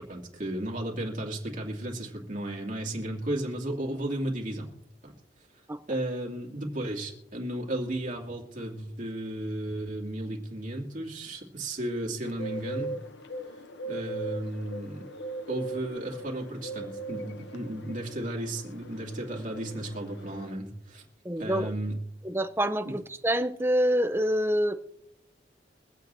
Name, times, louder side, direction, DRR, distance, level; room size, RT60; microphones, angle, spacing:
voice 1, 0.1-4.7 5.0-5.1 5.9-13.0 13.9-15.1 15.5-21.0 21.4-22.0 22.8-22.9, right 1 dB, 45° right, 2.4 m, -34 dB
Bird, 12.2-20.5, right 2 dB, 80° left, 0.8 m, -39 dB
voice 2, 21.2-21.7 22.2-24.7, equal, 15° right, 0.6 m, -26 dB
24.0 x 8.2 x 2.7 m
head